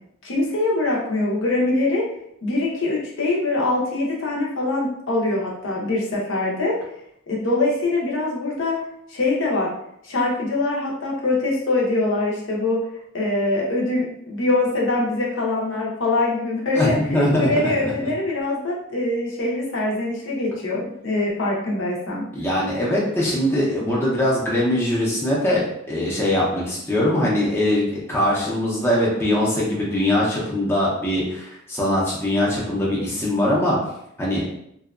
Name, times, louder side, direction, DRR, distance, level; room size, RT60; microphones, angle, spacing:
voice 1, 0.2-2.1 2.4-6.8 7.3-8.8 9.1-9.7 10.0-12.8 13.1-17.0 17.4-22.2, left 2 dB, 60° left, -3 dB, 0.6 m, -23 dB
voice 2, 16.7-17.7 22.3-33.8 34.2-34.4, left 1 dB, 10° left, -6 dB, 0.5 m, -22 dB
2.7 x 2.2 x 2.4 m, 0.74 s
head